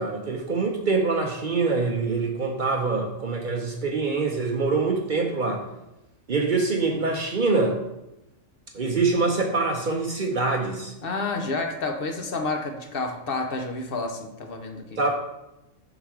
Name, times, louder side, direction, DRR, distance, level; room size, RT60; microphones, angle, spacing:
voice 1, 0.0-5.6 6.3-7.8 8.7-10.9 15.0-15.1, right 3 dB, 50° right, 1 dB, 0.7 m, -24 dB
voice 2, 11.0-15.0, left 3 dB, 55° left, 4 dB, 0.8 m, -30 dB
4.8 x 3.9 x 5.8 m, 0.91 s
omnidirectional pair, 1.4 m